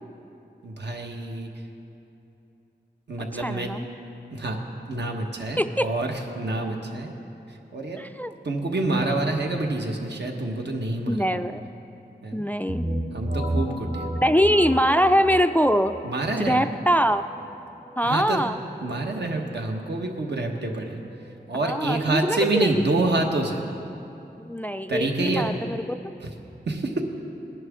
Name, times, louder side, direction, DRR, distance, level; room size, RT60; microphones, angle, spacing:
voice 1, 0.6-1.5 3.1-3.7 4.3-4.6 4.9-7.1 7.7-8.0 8.4-11.5 12.2-12.4 13.1-14.1 16.0-16.6 18.0-18.5 18.8-21.0 21.5-23.6 24.9-25.5 26.2-26.3 26.7-27.0, right 2 dB, 75° right, 2 dB, 1.3 m, -27 dB
voice 2, 3.4-3.9 5.6-5.9 8.0-8.3 11.1-11.6 12.3-12.8 14.2-16.0 16.4-17.2 18.0-18.6 21.6-22.7 24.4-25.8, equal, 10° left, 10 dB, 0.3 m, -23 dB
sound 1, 12.7-22.3, right 1 dB, 35° right, 2.2 m, -34 dB
19.0 x 11.0 x 3.6 m, 2.8 s
wide cardioid pair, 85°, 18 cm